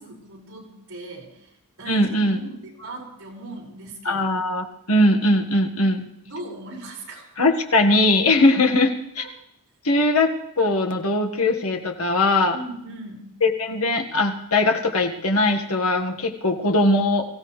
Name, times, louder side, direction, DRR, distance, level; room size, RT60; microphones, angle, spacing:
voice 1, 0.0-1.5 1.8-4.3 6.2-7.2 9.2-9.3 12.5-13.3, right 2 dB, 65° right, -2 dB, 5.6 m, -38 dB
voice 2, 1.9-2.4 4.0-6.0 7.4-9.2 9.8-12.5 13.4-17.3, left 2 dB, 75° left, 3 dB, 1.6 m, -20 dB
23.5 x 15.5 x 3.3 m, 0.80 s
head